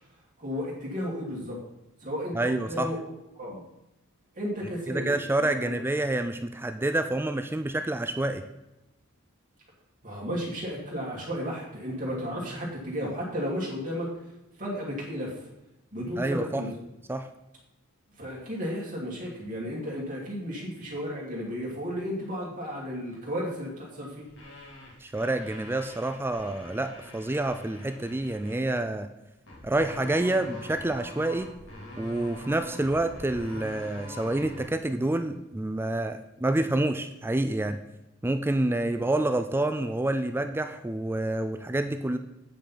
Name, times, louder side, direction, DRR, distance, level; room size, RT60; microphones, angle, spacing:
voice 1, 0.4-1.6 2.0-3.0 3.3-3.6 4.4-5.1 5.6-5.7 10.0-14.1 14.6-15.3 15.9-16.7 18.2-24.2, equal, 40° right, -4 dB, 2.4 m, -33 dB
voice 2, 2.3-2.9 4.9-8.4 16.2-16.6 17.1-17.3 25.0-29.1 29.6-31.5 32.0-37.8 38.2-42.2, right 2 dB, 10° right, 8 dB, 0.4 m, -28 dB
sound 1, 24.2-28.6 29.5-34.7, left 1 dB, 60° left, 2.9 m, -44 dB
9.0 x 5.2 x 5.7 m, 0.93 s
head